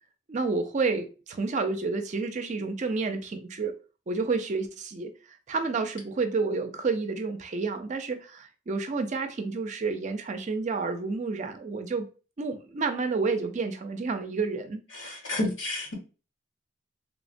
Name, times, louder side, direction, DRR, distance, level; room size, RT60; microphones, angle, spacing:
voice 1, 0.3-3.8 4.1-5.1 5.5-12.1 12.4-15.2, right 4 dB, 40° right, 0.4 m, -30 dB
voice 2, 14.9-15.9, left 1 dB, 80° left, 1.0 m, -30 dB
3.2 x 2.1 x 2.5 m
head